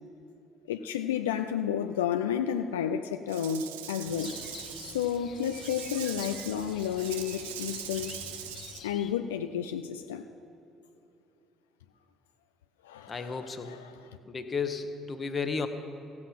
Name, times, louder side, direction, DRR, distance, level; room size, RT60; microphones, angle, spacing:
voice 1, 0.7-4.3 4.8-8.2 8.8-10.2 12.8-14.2, left 9 dB, 80° left, 7 dB, 0.4 m, -31 dB
Rattle / Rattle (instrument), 3.3-8.8, right 10 dB, 80° right, 0.6 m, -42 dB
sound 1, 4.0-9.1, left 7 dB, 50° left, 0.8 m, -47 dB
voice 2, 13.1-13.7 14.3-15.7, left 5 dB, 35° left, 8 dB, 1.0 m, -33 dB
15.5 x 7.7 x 5.8 m, 2.9 s
hypercardioid pair, 55°, 0 cm